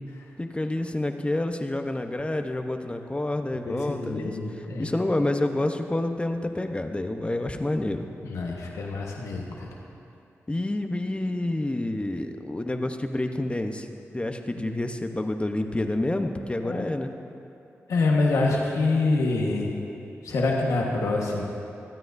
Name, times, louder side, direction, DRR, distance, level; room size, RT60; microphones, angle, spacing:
voice 1, 0.4-4.4 4.8-8.1 10.5-13.9 14.1-17.1, left 1 dB, 20° left, 6 dB, 0.9 m, -28 dB
voice 2, 3.7-4.9 8.2-9.7 16.6-16.9 17.9-19.7 20.2-21.4, left 3 dB, 85° left, -2 dB, 1.4 m, -26 dB
25.5 x 9.1 x 2.7 m, 2.8 s
cardioid pair, 50°, 5 cm